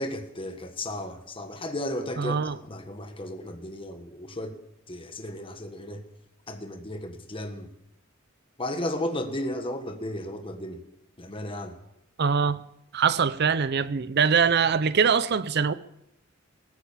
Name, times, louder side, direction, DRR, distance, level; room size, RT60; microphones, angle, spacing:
voice 1, 0.0-4.6 4.9-6.0 6.5-7.7 8.6-10.8 11.2-11.7, left 1 dB, 25° left, 1.4 m, -34 dB
voice 2, 2.2-2.6 12.2-12.6 12.9-15.7, right 6 dB, 55° right, 0.6 m, -23 dB
19.5 x 9.0 x 7.3 m
head